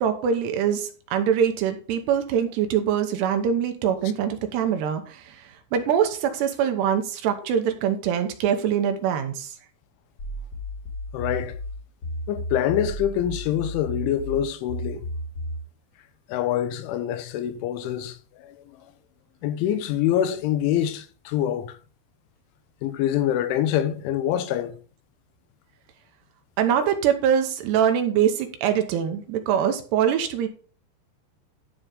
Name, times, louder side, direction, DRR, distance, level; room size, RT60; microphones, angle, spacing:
voice 1, 0.0-5.4 5.7-9.5 26.6-30.5, right 8 dB, 75° right, 2.8 m, -23 dB
sound 1, 10.2-15.7, left 1 dB, 30° left, 1.9 m, -33 dB
voice 2, 11.1-11.6 12.3-15.0 16.3-18.8 19.4-21.8 22.8-24.8, left 11 dB, 85° left, 3.2 m, -25 dB
12.0 x 4.3 x 5.1 m
omnidirectional pair, 5.5 m